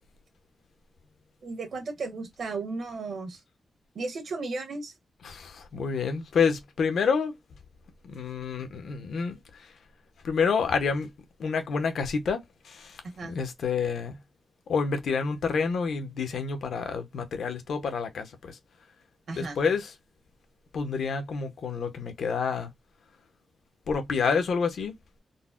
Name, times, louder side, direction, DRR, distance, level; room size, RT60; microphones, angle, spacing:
voice 1, 1.4-3.4 3.9-4.9 13.2-13.4 19.3-19.6, right 3 dB, 70° right, 1.1 m, -34 dB
voice 2, 5.2-7.4 8.1-9.4 10.2-11.1 11.4-14.2 14.7-18.6 19.3-19.9 20.7-22.7 23.9-25.0, left 5 dB, 90° left, 0.7 m, -28 dB
3.9 x 2.0 x 2.3 m
wide cardioid pair, 150°, 0 cm